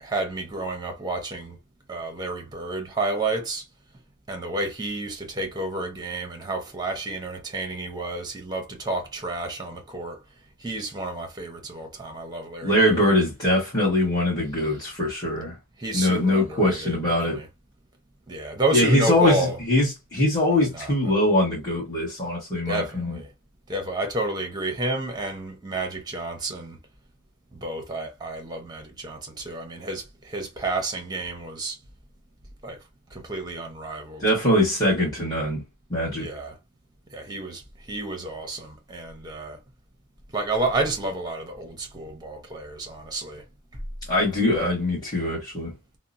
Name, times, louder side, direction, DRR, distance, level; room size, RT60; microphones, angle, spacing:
voice 1, 0.0-1.6 1.9-3.6 4.3-10.2 10.6-13.0 15.8-16.9 18.3-19.6 20.8-20.9 22.7-23.3 23.7-26.8 27.5-31.8 32.6-32.8 33.1-34.2 36.2-36.5 37.1-37.6 37.9-39.6 40.3-43.4 44.5-44.7, right 2 dB, 20° right, 0.7 m, -30 dB
voice 2, 12.6-15.6 15.9-17.4 18.7-23.2 34.2-35.6 35.9-36.3 44.1-45.7, left 1 dB, 20° left, 1.3 m, -22 dB
2.8 x 2.0 x 2.4 m
head